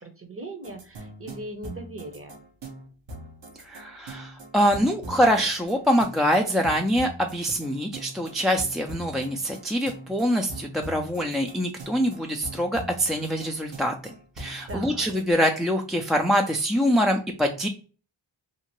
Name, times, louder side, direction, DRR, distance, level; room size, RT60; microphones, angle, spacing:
voice 1, 0.0-2.4 14.7-15.0, right 1 dB, 25° right, 6 dB, 0.9 m, -39 dB
sound 1, 0.6-15.2, right 1 dB, 60° right, 1.0 m, -42 dB
voice 2, 3.6-17.7, equal, ahead, 2 dB, 0.3 m, -24 dB
2.8 x 2.5 x 2.8 m, 0.38 s
cardioid pair, 50°, 50 cm